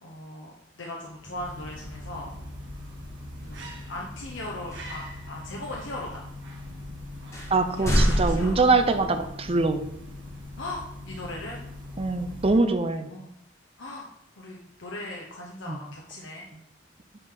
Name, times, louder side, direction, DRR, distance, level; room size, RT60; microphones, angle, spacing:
voice 1, 0.0-2.3 3.4-6.3 7.8-8.8 10.6-11.6 13.1-13.3 13.8-14.1 14.4-16.5, left 1 dB, 80° left, -2 dB, 1.0 m, -38 dB
sound 1, 1.1-12.9, left 1 dB, 70° right, 1.7 m, -41 dB
sound 2, 3.4-3.7 4.7-5.1 5.8-5.9 6.7-6.8 7.3-9.2, equal, 15° left, 1.5 m, -27 dB
voice 2, 7.5-9.9 12.0-13.1 15.7-15.8, right 3 dB, 30° right, 8 dB, 0.6 m, -23 dB
8.9 x 4.6 x 3.9 m, 0.78 s
head